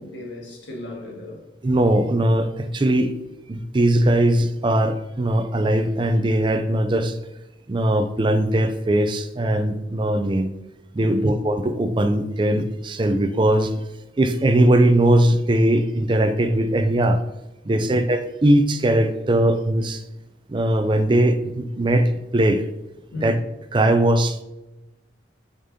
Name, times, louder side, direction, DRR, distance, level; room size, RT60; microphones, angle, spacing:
voice 1, 0.0-1.4 11.0-11.3 17.7-18.0 23.1-23.4, left 2 dB, 85° left, 1.6 m, -36 dB
voice 2, 1.6-3.2 3.5-7.2 7.7-10.5 10.9-13.7 14.2-17.2 17.7-20.0 20.5-22.6 23.1-23.4 23.7-24.4, right 1 dB, 25° right, 0.4 m, -20 dB
6.9 x 5.2 x 2.7 m
head